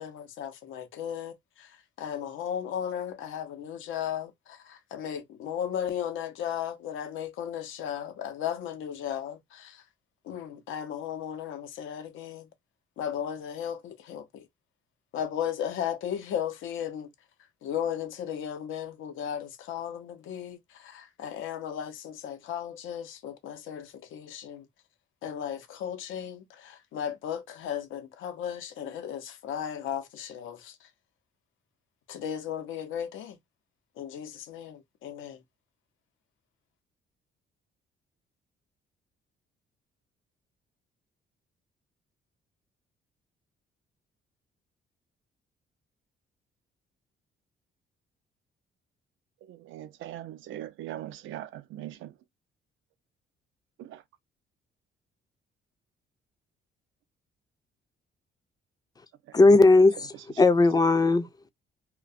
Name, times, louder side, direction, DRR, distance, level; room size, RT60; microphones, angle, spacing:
voice 1, 0.0-1.7 2.0-9.8 10.2-12.5 13.0-14.5 15.1-17.1 17.6-24.7 25.2-30.7 32.1-33.4 34.0-35.4, left 9 dB, 80° left, 0.6 m, -35 dB
voice 2, 49.5-52.1 53.8-54.0, right 13 dB, 80° right, 0.5 m, -40 dB
voice 3, 59.3-61.5, left 3 dB, 20° left, 0.4 m, -19 dB
2.3 x 2.2 x 2.5 m
cardioid pair, 90°, 20 cm